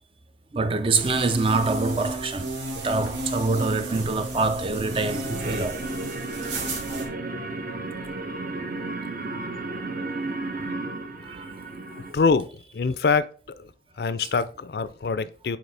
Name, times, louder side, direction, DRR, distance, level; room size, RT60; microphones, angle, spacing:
voice 1, 0.5-5.8 11.2-11.7, right 3 dB, 30° right, 0.5 m, -25 dB
sound 1, 0.9-7.1, right 2 dB, 85° right, 1.7 m, -33 dB
sound 2, 4.9-12.1, right 2 dB, 50° right, 0.8 m, -33 dB
voice 2, 12.1-12.5 12.7-13.3 13.6-13.7 14.0-15.6, left 4 dB, 60° left, 0.4 m, -24 dB
7.9 x 4.4 x 3.3 m
head